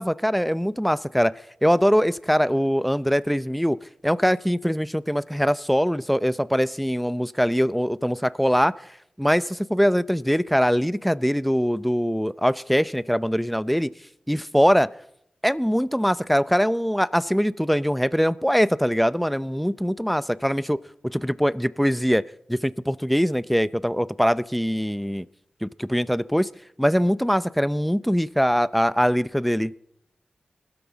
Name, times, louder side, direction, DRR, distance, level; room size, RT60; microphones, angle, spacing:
voice 1, 0.0-1.3 1.6-3.8 4.0-8.7 9.2-13.9 14.3-14.9 15.4-25.2 25.6-26.5 26.8-29.7, equal, ahead, 17 dB, 0.6 m, -22 dB
20.0 x 13.0 x 5.2 m, 0.76 s
cardioid pair, 55°, 3 cm